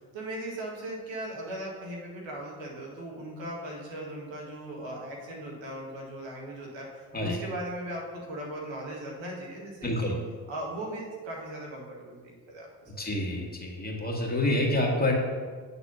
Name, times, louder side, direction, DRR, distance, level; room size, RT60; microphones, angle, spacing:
voice 1, 0.1-6.9 7.2-10.1 10.5-13.0, right 1 dB, 70° right, -2 dB, 2.1 m, -38 dB
voice 2, 9.8-10.2 13.0-15.1, left 1 dB, 20° left, -1 dB, 2.0 m, -27 dB
8.9 x 4.1 x 5.6 m, 1.5 s
hypercardioid pair, 55°, 46 cm